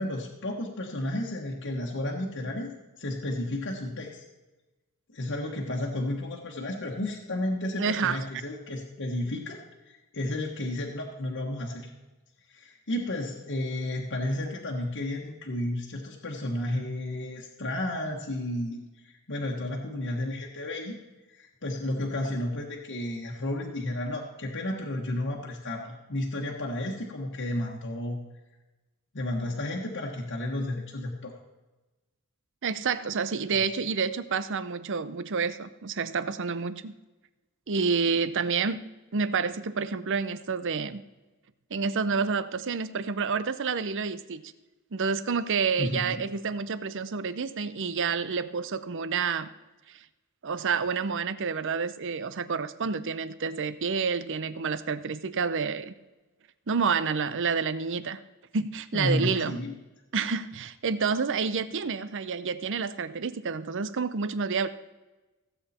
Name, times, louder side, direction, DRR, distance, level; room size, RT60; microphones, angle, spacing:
voice 1, 0.0-2.7 3.0-4.2 5.1-9.6 9.9-11.9 12.5-21.0 21.3-28.2 29.1-31.3 33.5-33.6 45.8-46.2 58.9-59.7, left 1 dB, 55° left, -1 dB, 1.4 m, -32 dB
voice 2, 7.8-8.2 32.6-36.9 37.7-38.8 39.1-41.0 41.7-44.4 44.9-49.5 49.9-50.0 50.4-55.9 56.7-58.2 58.5-59.6 60.1-64.7, right 5 dB, 60° right, 14 dB, 0.7 m, -29 dB
17.0 x 8.1 x 4.3 m, 1.1 s
head